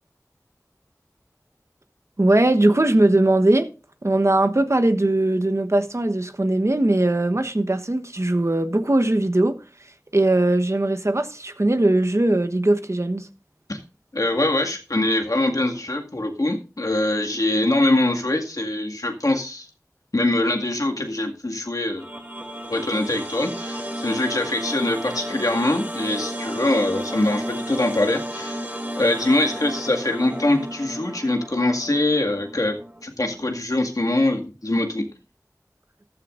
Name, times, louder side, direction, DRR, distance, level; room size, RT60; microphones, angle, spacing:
voice 1, 2.2-3.7 4.0-9.6 10.1-13.3, right 1 dB, 50° right, 1.1 m, -20 dB
voice 2, 14.1-19.7 20.1-22.0 22.7-35.0, left 2 dB, 70° left, 2.0 m, -23 dB
sound 1, 22.0-33.0, equal, 30° right, 3.0 m, -33 dB
14.0 x 13.0 x 2.6 m
wide cardioid pair, 45°, 6 cm